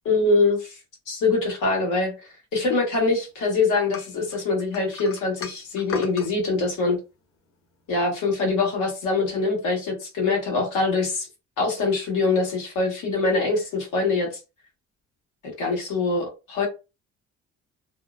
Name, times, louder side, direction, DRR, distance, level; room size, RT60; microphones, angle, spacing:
voice 1, 0.0-0.8 1.1-2.1 2.5-7.0 7.9-11.3 11.6-14.3 15.6-16.7, left 3 dB, 85° left, 0 dB, 1.3 m, -23 dB
sound 1, 3.9-6.3, left 6 dB, 45° left, 0.7 m, -36 dB
2.6 x 2.0 x 2.4 m, 0.29 s
cardioid pair, 90°, 30 cm